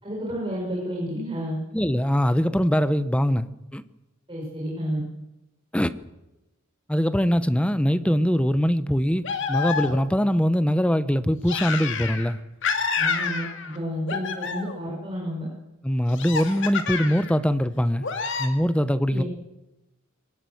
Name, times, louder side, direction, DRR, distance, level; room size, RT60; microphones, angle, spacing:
voice 1, 0.0-1.6 4.3-5.0 13.0-15.5 19.1-19.3, equal, 25° right, 5.9 m, -30 dB
voice 2, 1.7-3.8 5.7-5.9 6.9-12.4 15.8-18.1 18.4-19.2, equal, 5° left, 0.9 m, -22 dB
sound 1, 9.2-10.2 11.5-12.3 12.6-13.8 14.1-14.9 16.1-17.3 18.0-18.5, left 5 dB, 60° left, 2.4 m, -28 dB
23.0 x 18.5 x 8.0 m
head